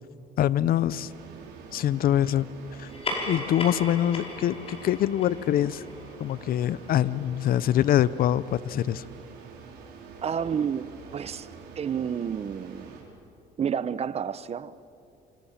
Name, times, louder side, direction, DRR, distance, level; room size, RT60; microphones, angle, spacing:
voice 1, 0.4-1.1 1.7-2.5 2.8-2.9 3.3-5.8 6.2-9.0, left 11 dB, 60° left, 0.7 m, -24 dB
sound 1, 0.9-13.0, right 5 dB, 80° right, 5.7 m, -46 dB
sound 2, 2.8-7.7, left 2 dB, 35° left, 5.6 m, -37 dB
voice 2, 10.2-11.5 11.8-13.1 13.6-14.7, right 7 dB, 40° right, 0.9 m, -30 dB
27.0 x 26.0 x 7.4 m
cardioid pair, 110°, 17 cm